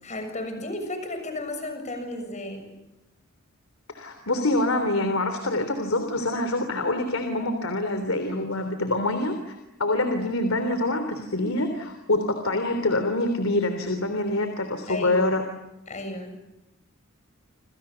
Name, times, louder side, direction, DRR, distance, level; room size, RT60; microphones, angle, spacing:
voice 1, 0.0-2.8 14.9-15.2 15.9-16.4, left 1 dB, 35° left, 7 dB, 7.0 m, -33 dB
voice 2, 3.9-15.4, left 2 dB, 80° left, 7 dB, 3.4 m, -25 dB
28.5 x 28.5 x 7.0 m, 0.94 s
head